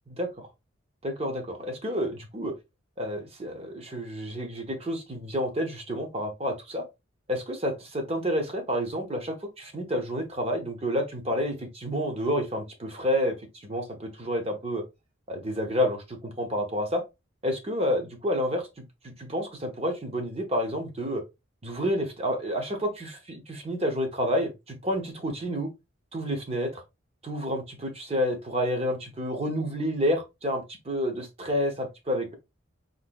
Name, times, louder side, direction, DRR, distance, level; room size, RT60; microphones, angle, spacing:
voice 1, 0.1-0.5 1.0-2.5 3.0-6.8 7.3-14.8 15.3-17.0 17.4-21.2 21.6-25.7 26.1-26.8 27.2-32.3, equal, 30° right, 0.7 m, -29 dB
3.9 x 2.6 x 2.2 m
head